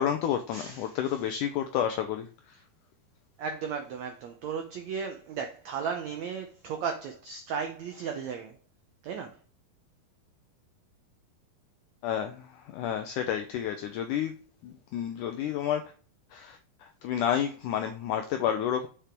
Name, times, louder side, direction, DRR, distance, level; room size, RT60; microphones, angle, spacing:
voice 1, 0.0-2.3 12.0-12.4 12.7-14.3 14.6-15.8 16.3-16.6 17.0-18.9, left 9 dB, 85° left, 1.8 m, -30 dB
voice 2, 0.5-1.0 3.4-8.6 9.0-9.4, right 6 dB, 90° right, 1.5 m, -35 dB
7.2 x 5.1 x 4.5 m
omnidirectional pair, 4.4 m